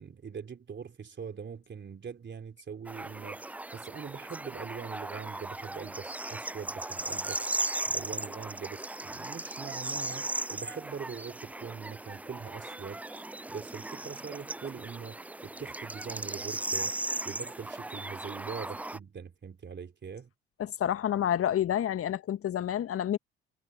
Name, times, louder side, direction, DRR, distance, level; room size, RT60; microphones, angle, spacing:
voice 1, 0.0-3.4 3.7-16.9 17.3-20.3, right 6 dB, 35° right, 3.6 m, -42 dB
sound 1, 2.9-19.0, right 2 dB, 5° right, 0.4 m, -37 dB
voice 2, 20.6-23.2, left 10 dB, 45° left, 1.8 m, -29 dB
figure-of-eight pair, 55°, 32 cm